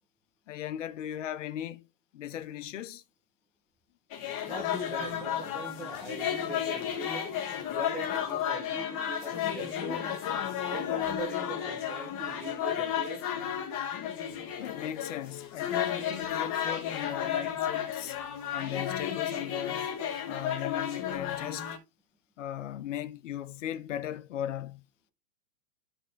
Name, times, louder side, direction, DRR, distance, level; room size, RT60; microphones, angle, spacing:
voice 1, 0.5-1.8 2.1-3.0 14.6-18.2 18.5-19.9 20.3-21.7 22.4-24.9, left 11 dB, 60° left, 0.8 m, -37 dB
sound 1, 4.1-21.8, left 9 dB, 25° left, 1.1 m, -33 dB
voice 2, 4.4-7.2 7.7-10.1 10.7-13.2, right 1 dB, ahead, 0.8 m, -41 dB
13.0 x 4.4 x 3.2 m
supercardioid pair, 175°, 42 cm